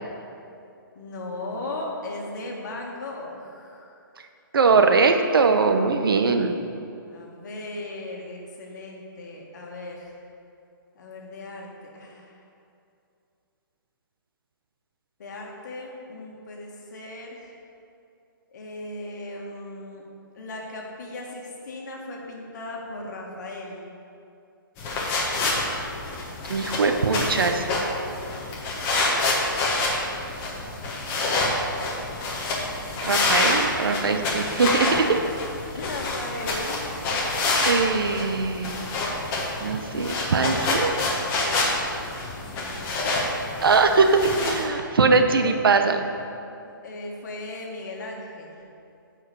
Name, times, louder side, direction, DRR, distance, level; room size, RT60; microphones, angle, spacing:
voice 1, 0.9-4.0 7.1-10.2 11.0-12.4 15.2-17.5 18.5-20.0 20.3-23.8 35.7-37.1 42.5-43.3 45.2-45.6 46.6-48.6, left 2 dB, 55° left, -1 dB, 1.9 m, -37 dB
voice 2, 4.5-6.6 26.5-27.7 33.0-35.2 37.6-38.8 39.6-40.9 43.6-46.1, right 4 dB, 80° right, 6 dB, 0.9 m, -21 dB
sound 1, 24.8-44.6, left 2 dB, 20° left, 1.3 m, -27 dB
9.4 x 5.0 x 6.8 m, 2.6 s
hypercardioid pair, 160°, 12 cm